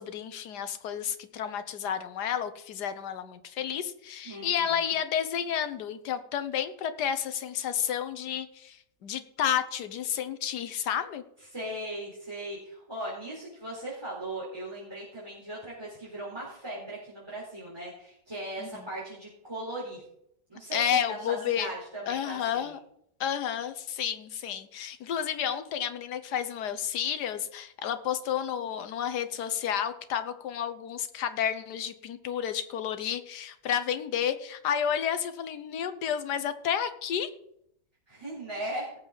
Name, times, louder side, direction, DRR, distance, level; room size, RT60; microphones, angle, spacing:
voice 1, 0.0-11.2 18.6-18.9 20.7-21.7 22.1-22.8 23.2-37.3, left 9 dB, 80° left, 11 dB, 1.5 m, -31 dB
voice 2, 4.2-5.0 11.5-20.0 20.5-22.7 38.1-38.9, right 1 dB, 15° right, -8 dB, 4.1 m, -38 dB
18.0 x 7.3 x 4.0 m, 0.74 s
omnidirectional pair, 1.7 m